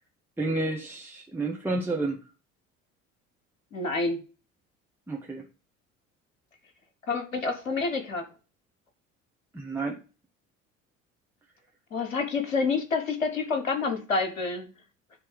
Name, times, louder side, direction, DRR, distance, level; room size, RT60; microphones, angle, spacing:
voice 1, 0.4-2.2 5.1-5.4 9.5-10.0, right 2 dB, 5° right, -1 dB, 1.1 m, -30 dB
voice 2, 3.7-4.2 7.1-8.3 11.9-14.7, left 4 dB, 80° left, 7 dB, 1.2 m, -28 dB
9.4 x 3.2 x 6.6 m, 0.34 s
figure-of-eight pair, 60°, 39 cm